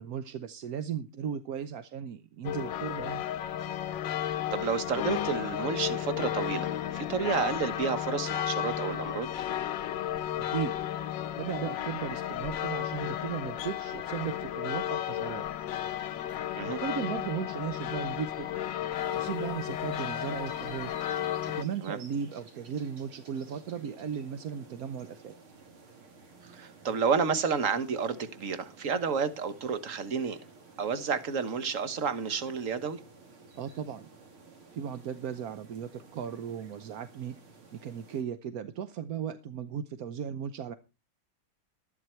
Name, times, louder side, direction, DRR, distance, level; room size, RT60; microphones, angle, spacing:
voice 1, 0.0-3.2 10.5-10.7 11.4-15.4 16.6-18.5 18.9-20.9 21.2-25.3 33.6-34.1 34.7-37.4 37.7-40.7, right 8 dB, 60° right, 1.0 m, -36 dB
sound 1, 2.4-21.6, left 11 dB, 65° left, 1.4 m, -33 dB
voice 2, 4.2-9.3 16.6-16.8 21.8-22.0 26.5-30.4 30.8-33.0, right 6 dB, 45° right, 1.4 m, -30 dB
sound 2, 18.9-38.2, right 4 dB, 85° right, 3.9 m, -54 dB
13.0 x 11.0 x 4.4 m
omnidirectional pair, 2.3 m